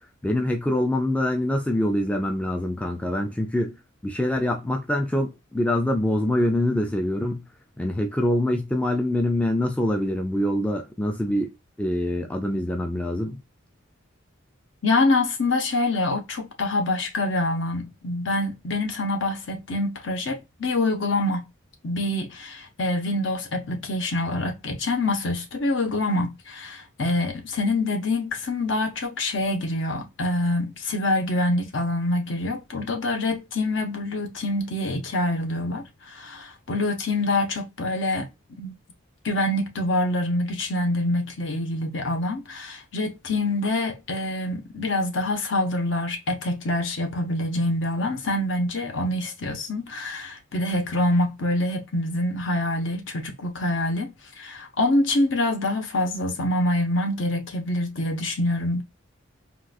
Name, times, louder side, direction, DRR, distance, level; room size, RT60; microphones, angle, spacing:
voice 1, 0.2-3.8 4.0-7.5 7.8-13.4, left 1 dB, 5° left, 0.3 m, -25 dB
voice 2, 14.8-21.5 21.8-38.8 39.2-58.8, left 2 dB, 60° left, 0.7 m, -26 dB
3.7 x 2.3 x 2.4 m
head